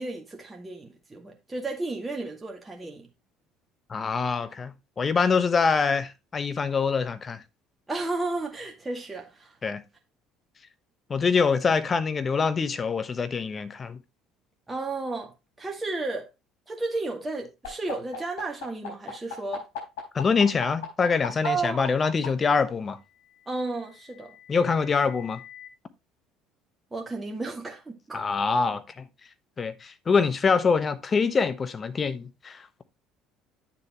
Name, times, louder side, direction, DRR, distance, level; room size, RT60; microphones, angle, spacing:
voice 1, 0.0-3.1 7.9-9.6 14.7-15.3 15.6-16.3 16.7-19.6 21.4-21.9 22.4-22.6 23.5-24.3 26.9-28.4, right 3 dB, 20° right, 2.1 m, -33 dB
voice 2, 3.9-7.4 9.6-9.8 11.1-14.0 20.1-23.0 24.5-25.4 28.1-29.0 29.6-32.8, left 5 dB, 35° left, 1.1 m, -25 dB
sound 1, 17.6-22.3 23.4-25.7, left 10 dB, 70° left, 4.3 m, -39 dB
9.6 x 6.7 x 3.0 m
hypercardioid pair, 60°, 0 cm